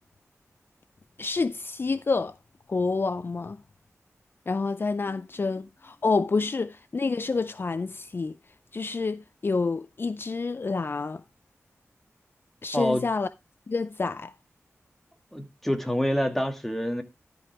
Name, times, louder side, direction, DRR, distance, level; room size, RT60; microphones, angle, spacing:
voice 1, 1.2-2.3 2.7-3.6 4.5-8.3 8.7-11.2 12.6-13.3 13.7-14.3, left 4 dB, 45° left, 0.4 m, -28 dB
voice 2, 12.7-13.0 15.3-17.0, equal, 5° left, 2.0 m, -26 dB
13.0 x 5.3 x 4.6 m
wide cardioid pair, 90°, 5 cm